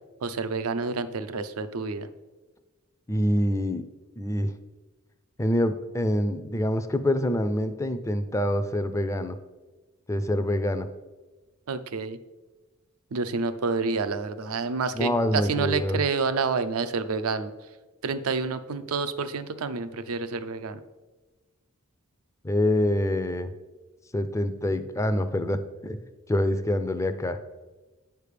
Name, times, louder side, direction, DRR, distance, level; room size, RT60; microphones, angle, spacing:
voice 1, 0.2-2.1 11.7-12.2 13.1-17.5 18.0-20.8, right 4 dB, 75° right, 11 dB, 0.5 m, -28 dB
voice 2, 3.1-3.8 4.2-4.5 5.4-9.4 10.1-10.9 14.9-16.0 22.4-23.5 24.1-26.0 26.3-27.4, left 1 dB, 15° left, 10 dB, 0.4 m, -26 dB
9.2 x 3.4 x 6.6 m, 1.2 s
head